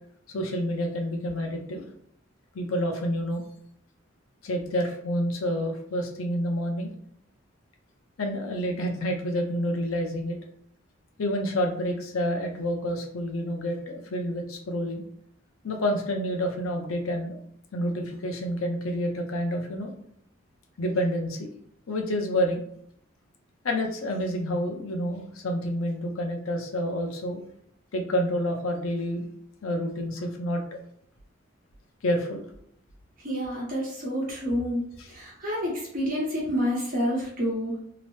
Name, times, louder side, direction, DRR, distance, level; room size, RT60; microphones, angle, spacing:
voice 1, 0.3-1.9 2.5-3.4 4.4-6.9 8.2-10.4 11.2-15.0 15.6-17.4 17.7-19.9 20.8-21.5 21.9-22.6 23.6-27.4 27.9-29.3 29.6-30.8 32.0-32.5 35.0-35.1, equal, 85° left, 2 dB, 0.6 m, -28 dB
voice 2, 33.2-34.8 35.1-37.8, equal, 40° right, -4 dB, 1.0 m, -28 dB
2.9 x 2.0 x 3.1 m, 0.69 s
head